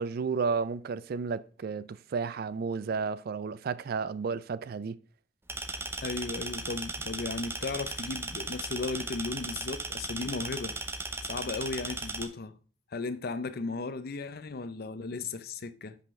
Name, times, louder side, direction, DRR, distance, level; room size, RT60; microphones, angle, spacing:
voice 1, 0.0-5.0, right 5 dB, 55° right, 0.4 m, -32 dB
sound 1, 5.5-12.2, right 2 dB, 15° right, 0.7 m, -37 dB
voice 2, 6.0-10.8 11.2-12.6 12.9-16.0, left 3 dB, 55° left, 0.6 m, -35 dB
10.0 x 5.7 x 3.2 m
head